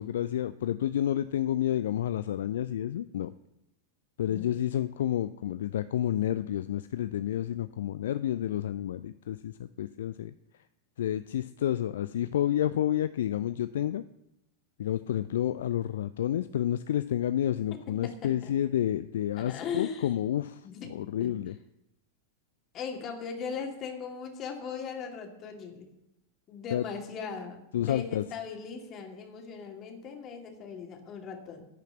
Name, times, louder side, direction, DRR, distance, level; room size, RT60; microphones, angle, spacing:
voice 1, 0.0-3.3 4.2-10.3 11.0-14.0 14.8-20.6 20.9-21.5 26.7-26.8 27.7-28.3, left 11 dB, 60° left, 13 dB, 0.4 m, -30 dB
voice 2, 17.9-18.5 19.4-20.1 20.6-20.9 21.2-21.3 22.7-25.9 26.5-31.7, left 6 dB, 30° left, 2 dB, 2.6 m, -39 dB
12.0 x 5.8 x 8.5 m, 0.85 s
figure-of-eight pair, 90°, 0 cm